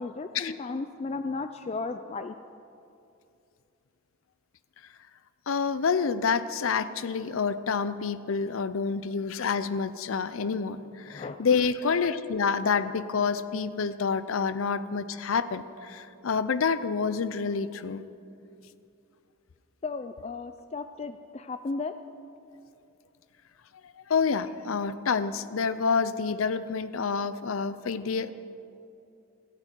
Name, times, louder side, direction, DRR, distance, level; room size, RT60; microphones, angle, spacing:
voice 1, 0.0-2.3 11.1-11.4 19.8-21.9, left 3 dB, 30° left, 9 dB, 0.3 m, -35 dB
voice 2, 5.5-18.0 24.1-28.3, left 5 dB, 80° left, 14 dB, 0.5 m, -28 dB
17.0 x 14.5 x 4.5 m, 2.6 s
head